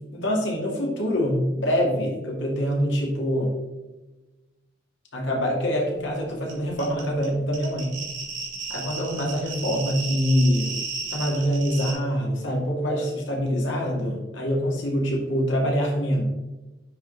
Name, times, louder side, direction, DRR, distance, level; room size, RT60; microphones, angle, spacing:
voice 1, 0.1-3.5 5.1-8.0 8.7-10.7 11.1-16.3, equal, 75° left, -1 dB, 2.0 m, -25 dB
sound 1, 6.5-6.6 6.8-11.9, right 4 dB, 75° right, 2.6 m, -33 dB
9.6 x 3.9 x 3.8 m, 1.1 s
head